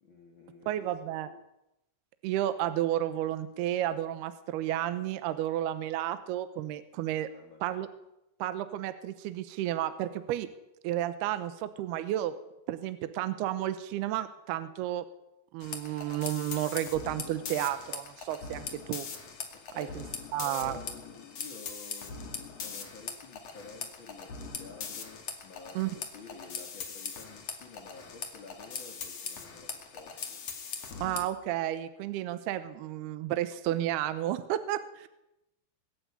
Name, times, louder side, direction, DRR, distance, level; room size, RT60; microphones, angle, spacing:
voice 1, 0.0-0.9 1.2-1.4 7.3-7.8 19.5-20.1 20.4-30.4, left 4 dB, 65° left, 4 dB, 1.1 m, -51 dB
voice 2, 0.7-1.3 2.2-7.3 7.6-7.9 8.4-10.5 10.8-12.4 12.7-15.1 15.5-19.1 19.8-20.0 20.3-20.8 25.8-25.9 31.0-35.1, right 12 dB, 75° right, 11 dB, 2.5 m, -32 dB
sound 1, 15.6-31.2, left 6 dB, 45° left, 2.5 m, -41 dB
22.5 x 13.0 x 9.7 m, 0.90 s
omnidirectional pair, 5.6 m